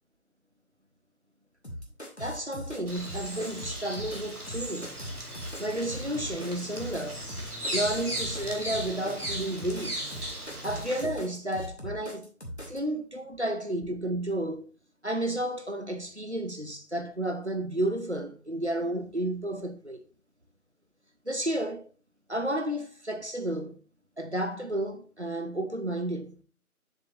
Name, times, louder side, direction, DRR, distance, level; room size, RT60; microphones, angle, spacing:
sound 1, 1.6-12.8, equal, 45° left, 1.6 m, -40 dB
voice 1, 2.2-5.0 5.6-7.2 7.7-10.0 10.6-12.3 12.7-14.6 15.0-20.0 21.3-21.8 22.3-23.8 24.2-26.4, right 1 dB, 50° right, 0.9 m, -32 dB
Bird vocalization bird call bird song, 2.9-11.1, right 1 dB, 80° right, 2.5 m, -37 dB
7.5 x 7.0 x 2.8 m
figure-of-eight pair, 175°, 45 cm